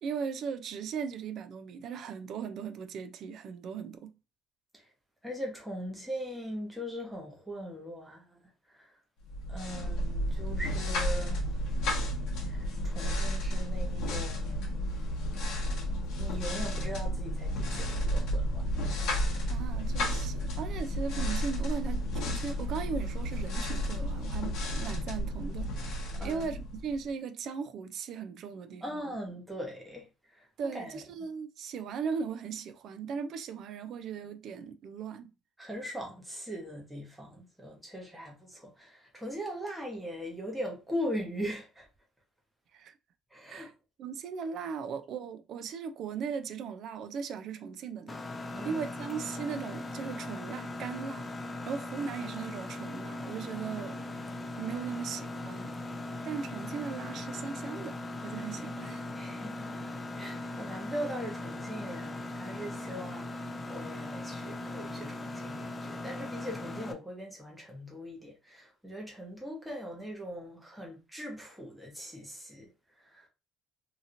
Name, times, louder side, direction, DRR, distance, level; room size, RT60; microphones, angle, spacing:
voice 1, 0.0-4.2 19.5-29.2 30.6-35.3 42.7-42.9 43.5-43.7 44.0-48.2 48.6-51.3 51.7-54.1 54.6-55.7 56.2-59.0, right 6 dB, 50° right, 0.4 m, -38 dB
voice 2, 5.2-8.4 8.7-9.0 9.5-11.5 12.4-14.7 16.1-19.0 26.2-26.6 28.8-31.0 35.6-41.9 43.3-43.7 48.5-48.9 54.0-54.4 59.1-59.7 60.1-72.7 73.0-73.3, equal, 5° right, 0.9 m, -40 dB
sound 1, 9.3-27.1, equal, 65° left, 0.9 m, -32 dB
Mechanisms, 48.1-66.9, left 2 dB, 15° left, 0.4 m, -39 dB
2.8 x 2.8 x 2.5 m
cardioid pair, 145°, 0 cm